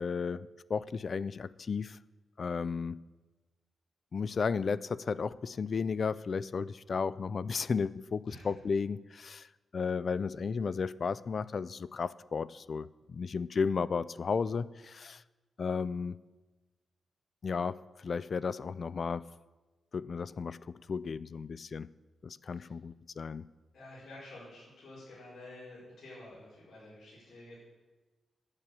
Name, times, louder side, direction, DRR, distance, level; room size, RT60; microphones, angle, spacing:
voice 1, 0.0-2.0 2.4-3.0 4.1-9.5 9.7-15.2 15.6-16.2 17.4-19.3 19.9-21.9 22.2-23.5, left 5 dB, 45° left, 18 dB, 0.3 m, -34 dB
voice 2, 23.7-27.6, left 1 dB, 70° left, -9 dB, 5.1 m, -50 dB
9.7 x 7.4 x 8.5 m, 1.2 s
wide cardioid pair, 150°, 0 cm